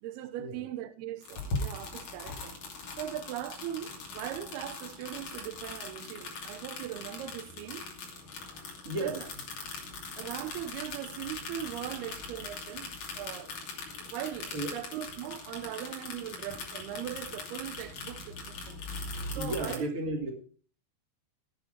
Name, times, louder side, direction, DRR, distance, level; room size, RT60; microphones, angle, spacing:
voice 1, 0.0-2.6 3.0-8.1 9.0-9.3 10.2-13.5 14.1-18.8 19.3-19.9, right 12 dB, 90° right, 2.9 m, -40 dB
sound 1, 1.2-19.8, left 3 dB, 55° left, 4.1 m, -41 dB
voice 2, 8.8-9.2 9.9-10.0 14.0-14.1 14.5-14.8 19.3-20.3, right 1 dB, 40° right, 2.6 m, -34 dB
16.5 x 8.7 x 5.1 m
omnidirectional pair, 4.4 m